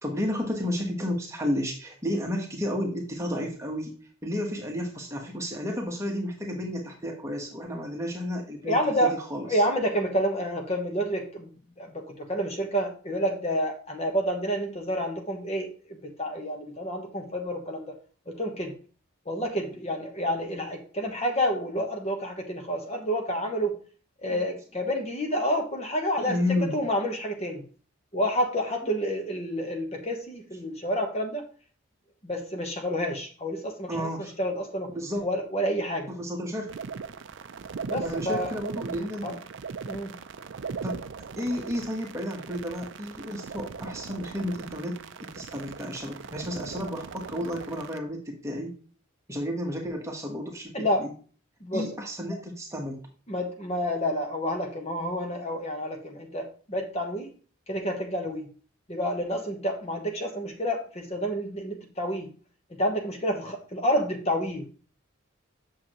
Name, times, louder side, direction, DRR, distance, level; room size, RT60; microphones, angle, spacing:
voice 1, 0.0-3.9 4.2-9.6 24.3-24.4 26.2-26.7 33.9-34.3 34.9-35.2 36.1-36.7 38.0-39.4 40.8-41.0 41.4-48.7 49.3-51.1 51.7-53.1, left 1 dB, 15° right, 1 dB, 1.2 m, -32 dB
voice 2, 8.6-9.2 9.5-11.5 11.8-17.9 18.3-18.7 19.3-23.8 24.2-26.4 26.7-27.6 28.1-31.4 32.2-34.1 34.4-34.9 35.2-36.1 37.9-38.5 39.2-39.3 39.9-40.1 50.7-51.0 51.6-51.9 53.3-57.3 57.7-58.5 58.9-62.3 62.7-64.7, equal, 30° left, 4 dB, 1.0 m, -29 dB
sound 1, 36.7-48.0, right 5 dB, 55° right, 0.4 m, -39 dB
8.3 x 6.5 x 3.0 m, 0.39 s
head